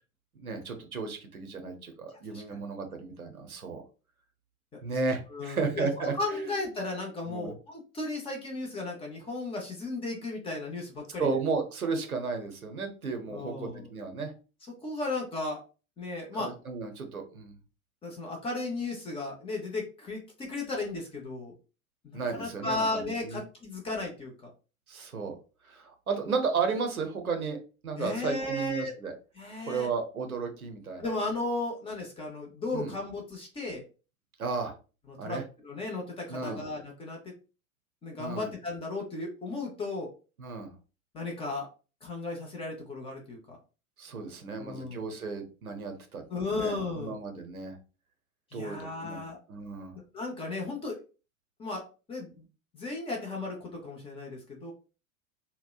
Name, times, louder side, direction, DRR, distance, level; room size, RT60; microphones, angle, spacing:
voice 1, 0.4-3.8 4.8-6.4 7.2-7.5 11.2-14.3 16.4-17.5 22.1-23.4 24.9-25.3 25.7-29.1 29.7-31.1 32.7-32.9 34.4-34.7 35.2-35.4 36.3-36.6 38.2-38.5 40.4-40.7 44.0-46.2 46.5-47.8 48.5-49.2 49.5-50.0, right 4 dB, 85° right, 5 dB, 0.6 m, -34 dB
voice 2, 5.3-11.3 13.3-13.9 14.8-15.6 16.0-16.5 18.0-21.5 22.0-24.5 28.0-28.9 29.4-29.9 31.0-33.8 35.1-37.3 38.0-40.1 41.1-41.7 42.0-43.6 44.6-45.0 46.3-47.2 48.5-49.4 50.1-51.0 51.6-51.8 52.1-52.5 52.7-54.7, left 2 dB, 15° left, 0 dB, 0.5 m, -35 dB
2.8 x 2.0 x 2.3 m, 0.34 s
figure-of-eight pair, 85°, 42 cm